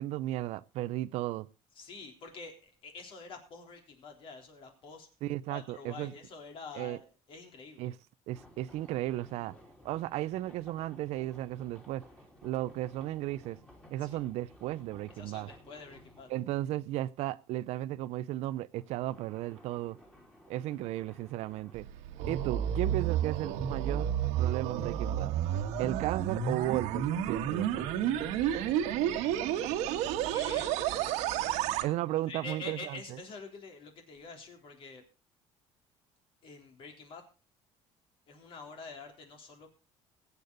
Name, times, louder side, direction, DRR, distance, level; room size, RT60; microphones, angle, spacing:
voice 1, 0.0-1.5 5.2-6.1 6.7-7.0 7.8-7.9 8.3-9.5 9.8-12.0 12.4-13.6 13.9-15.5 16.3-20.0 20.5-21.9 22.3-24.1 24.4-25.4 25.8-27.9 31.8-33.0, right 15 dB, 70° right, 0.6 m, -35 dB
voice 2, 1.8-5.1 5.5-8.0 14.0-14.2 15.2-16.3 29.9-30.0 30.3-30.8 32.3-35.0 36.4-37.2 38.3-39.7, left 4 dB, 50° left, 3.6 m, -47 dB
sound 1, 8.3-16.5 18.7-21.7, left 1 dB, 10° left, 3.6 m, -57 dB
sound 2, 21.7-31.9, right 10 dB, 90° right, 1.5 m, -31 dB
21.5 x 8.4 x 3.9 m
cardioid pair, 140°, 11 cm